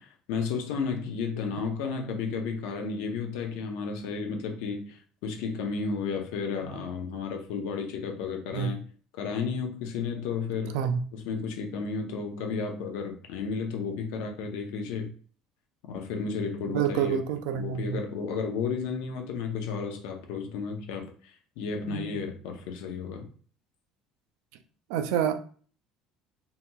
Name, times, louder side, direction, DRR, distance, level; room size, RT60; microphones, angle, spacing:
voice 1, 0.0-8.8 9.1-10.8 11.1-15.1 15.8-17.2 17.5-23.3, left 5 dB, 85° left, 0.6 m, -33 dB
voice 2, 16.7-18.0 21.8-22.2 24.9-25.3, right 8 dB, 85° right, 0.3 m, -28 dB
2.8 x 2.7 x 2.2 m
cardioid pair, 165°, 0 cm